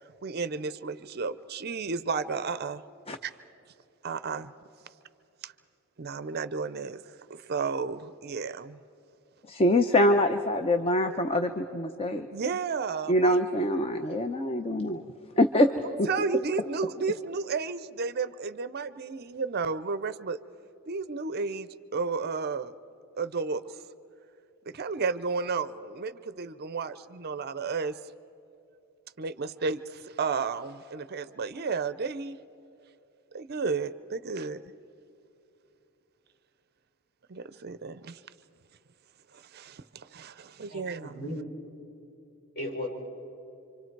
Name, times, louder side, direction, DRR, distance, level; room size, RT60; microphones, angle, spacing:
voice 1, 0.2-2.8 3.2-3.3 4.0-4.5 5.4-5.5 6.0-8.8 12.3-13.4 16.1-20.4 20.9-22.7 23.2-23.8 24.7-28.0 29.2-32.4 33.3-34.6 37.3-38.2 39.3-41.3, right 4 dB, 45° right, 14 dB, 0.5 m, -32 dB
voice 2, 9.5-12.3 13.1-15.0 15.4-15.7 16.0-16.1, left 1 dB, 25° left, 7 dB, 0.7 m, -24 dB
voice 3, 40.7-41.5 42.5-42.9, left 1 dB, 45° left, -2 dB, 4.6 m, -36 dB
27.5 x 25.0 x 4.6 m, 2.9 s
head